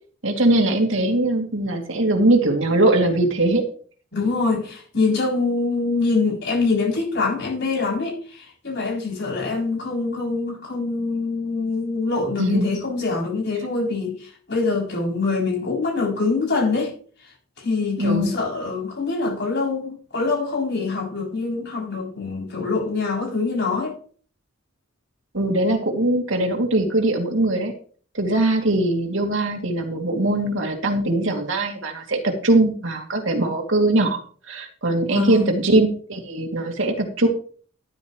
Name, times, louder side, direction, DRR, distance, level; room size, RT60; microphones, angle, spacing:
voice 1, 0.2-3.6 12.4-12.7 18.0-18.4 25.3-27.7 28.1-34.2 34.5-37.3, right 1 dB, 65° right, 2.7 m, -21 dB
voice 2, 4.1-16.9 17.2-17.3 17.6-24.0 35.1-35.5, left 3 dB, 55° left, 7.4 m, -24 dB
13.0 x 12.0 x 3.2 m
head